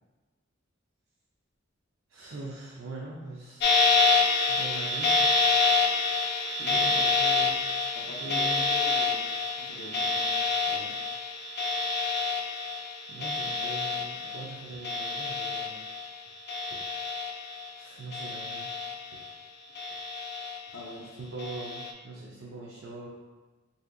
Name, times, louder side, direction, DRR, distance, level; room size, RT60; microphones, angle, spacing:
voice 1, 2.1-3.9 4.4-5.3 6.7-7.6 8.2-8.6 13.1-15.9 16.7-16.8 17.8-18.7 19.1-19.2 21.2-23.1, right 2 dB, 75° right, -4 dB, 0.6 m, -41 dB
sound 1, 3.6-16.2 16.5-17.7 18.1-19.3 19.7-20.8 21.4-21.9, left 3 dB, 55° left, 0.4 m, -27 dB
voice 2, 6.6-7.1 7.9-9.3 9.6-11.0 20.7-21.2, left 1 dB, 90° left, -1 dB, 0.7 m, -44 dB
4.1 x 2.7 x 2.5 m, 1.2 s
head